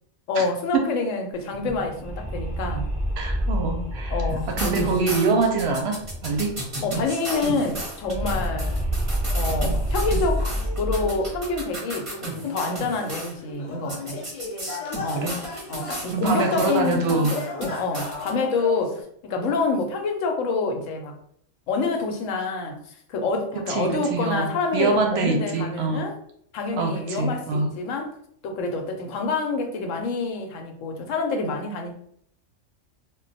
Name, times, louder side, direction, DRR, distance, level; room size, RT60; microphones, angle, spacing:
voice 1, 0.3-2.9 4.1-5.1 6.8-8.8 9.3-10.5 10.8-14.2 15.0-15.3 15.7-21.1 21.7-22.8 23.1-26.1 26.5-28.1 28.4-31.9, left 3 dB, 85° left, 4 dB, 1.0 m, -27 dB
sound 1, 1.4-6.7 7.0-7.1 7.3-11.7, equal, 10° left, 0.6 m, -28 dB
voice 2, 3.2-4.2 4.5-6.6 15.1-15.4 16.1-17.3 23.6-26.1 26.8-27.7, right 3 dB, 65° right, 3 dB, 0.7 m, -24 dB
sound 2, 4.3-13.3 13.9-18.3, right 2 dB, 30° right, 0.7 m, -33 dB
sound 3, 9.3-19.0, left 3 dB, 55° left, 0.4 m, -37 dB
2.2 x 2.2 x 3.8 m, 0.67 s
omnidirectional pair, 1.3 m